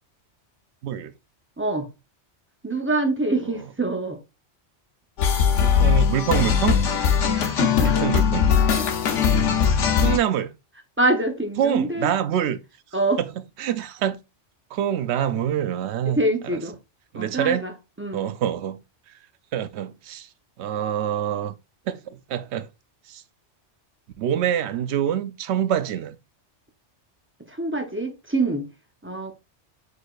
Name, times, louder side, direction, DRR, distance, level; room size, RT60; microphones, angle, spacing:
voice 1, 0.8-1.1 5.5-6.8 7.8-8.5 9.3-9.6 10.0-10.5 11.6-12.6 13.6-14.2 14.7-16.2 16.4-16.6 17.1-17.7 18.1-19.1 19.5-20.3 20.6-21.5 21.9-22.7 23.1-23.2 24.2-26.2, right 10 dB, 70° right, 0.8 m, -26 dB
voice 2, 1.6-1.9 2.6-4.2 7.4-8.1 8.7-8.8 11.0-12.1 12.9-13.2 16.1-16.8 17.1-17.7 18.0-18.2 27.5-28.7 29.0-29.4, right 2 dB, 15° right, 0.4 m, -25 dB
sound 1, 5.2-10.2, left 7 dB, 85° left, 1.1 m, -20 dB
4.8 x 4.1 x 2.3 m
omnidirectional pair, 1.2 m